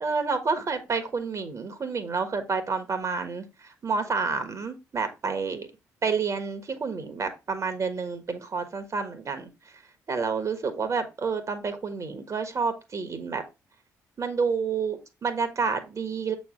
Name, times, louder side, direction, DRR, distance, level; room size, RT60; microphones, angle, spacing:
voice 1, 0.0-5.7 6.0-9.8 10.1-13.4 14.2-16.4, right 5 dB, 35° right, 9 dB, 1.4 m, -29 dB
7.8 x 3.3 x 5.0 m, 0.25 s
figure-of-eight pair, 45°, 9 cm